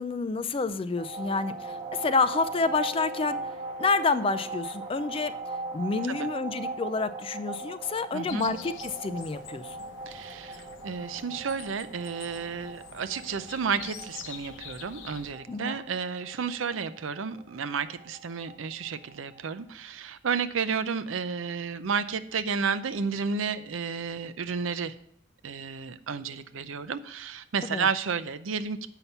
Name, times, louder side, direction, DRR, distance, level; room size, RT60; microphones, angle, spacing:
voice 1, 0.0-3.4 3.8-5.3 5.7-9.8 15.5-15.8 27.6-27.9, left 4 dB, 30° left, 13 dB, 0.4 m, -28 dB
sound 1, 1.0-19.6, right 2 dB, 25° right, 1.2 m, -39 dB
voice 2, 8.1-8.5 10.1-24.9 25.4-28.9, right 6 dB, 85° right, 12 dB, 0.5 m, -32 dB
sound 2, 8.3-15.3, left 6 dB, 75° left, 0.8 m, -46 dB
8.2 x 5.8 x 5.5 m, 0.68 s
head